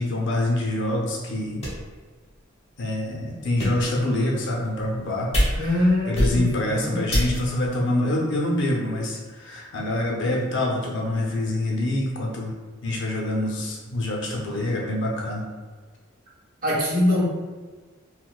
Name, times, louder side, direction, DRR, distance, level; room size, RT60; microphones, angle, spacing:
voice 1, 0.0-1.7 2.8-12.6 12.8-15.5, left 1 dB, 60° left, -1 dB, 0.6 m, -26 dB
sound 1, 0.9-1.0 1.6-2.0 2.6-2.7 3.4-4.0 4.7-5.0 5.3-5.8 6.1-6.7 7.1-7.6, equal, 30° left, 1.0 m, -25 dB
voice 2, 5.6-7.0 16.6-17.3, left 1 dB, 45° right, -5 dB, 0.9 m, -23 dB
4.1 x 2.1 x 2.3 m, 1.4 s
head